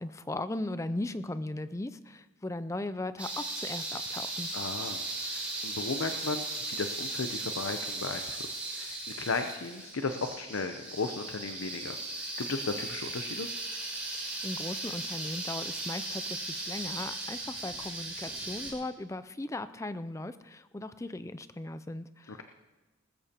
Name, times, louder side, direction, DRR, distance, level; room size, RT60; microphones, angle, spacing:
voice 1, 0.0-4.5 14.2-22.4, left 2 dB, 15° left, 13 dB, 0.4 m, -38 dB
sound 1, 3.2-18.7, right 2 dB, 5° right, 3.4 m, -37 dB
voice 2, 4.5-13.5 22.3-22.4, left 4 dB, 80° left, 6 dB, 0.7 m, -36 dB
19.5 x 13.5 x 2.9 m, 1.2 s
head